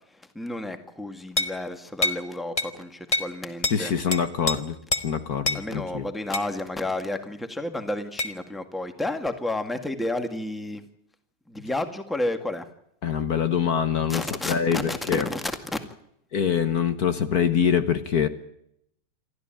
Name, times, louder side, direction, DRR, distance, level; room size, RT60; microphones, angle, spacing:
voice 1, 0.1-3.9 5.5-10.8 11.5-12.7 14.1-15.8, left 1 dB, ahead, 8 dB, 1.8 m, -31 dB
sound 1, 1.4-1.6 2.0-2.2 2.6-2.7 3.1-3.3 3.6-3.8 4.1-4.6 4.9-5.1 5.5-5.6 6.3-6.5 8.2-8.4, left 2 dB, 20° left, 1.2 m, -26 dB
voice 2, 3.7-4.8 5.0-6.1 13.0-15.3 16.3-18.3, left 7 dB, 60° left, 10 dB, 1.7 m, -24 dB
28.0 x 13.5 x 9.1 m, 0.74 s
omnidirectional pair, 1.9 m